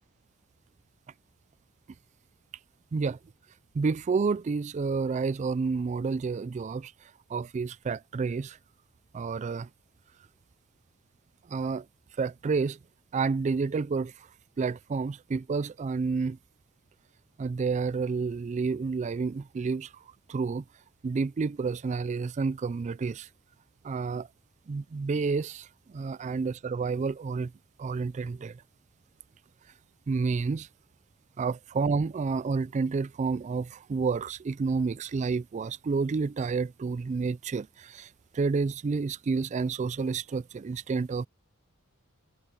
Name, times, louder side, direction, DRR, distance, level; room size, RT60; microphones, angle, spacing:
voice 1, 3.8-6.9 7.3-8.6 9.1-9.7 11.5-11.8 12.2-12.8 13.1-14.1 14.6-16.4 17.4-19.9 20.3-20.6 21.0-23.3 23.8-24.3 24.7-25.7 25.9-27.5 27.8-28.5 30.1-30.7 31.4-38.1 38.3-41.3, right 4 dB, 30° right, 0.3 m, -29 dB
open air
head